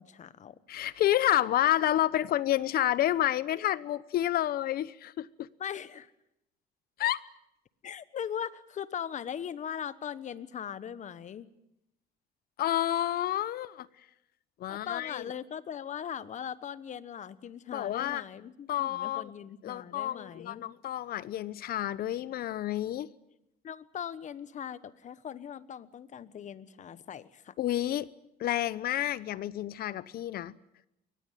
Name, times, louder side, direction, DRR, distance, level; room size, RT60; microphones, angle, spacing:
voice 1, 0.0-0.6 5.6-6.1 7.8-11.5 14.7-20.7 23.6-27.5, left 8 dB, 45° left, 1.2 m, -40 dB
voice 2, 0.7-5.5 7.0-7.2 12.6-13.9 14.6-15.2 17.7-18.2 18.7-19.3 19.6-23.1 27.6-28.1 28.4-30.6, left 13 dB, 65° left, 1.0 m, -29 dB
23.0 x 20.0 x 9.2 m
cardioid pair, 110°, 17 cm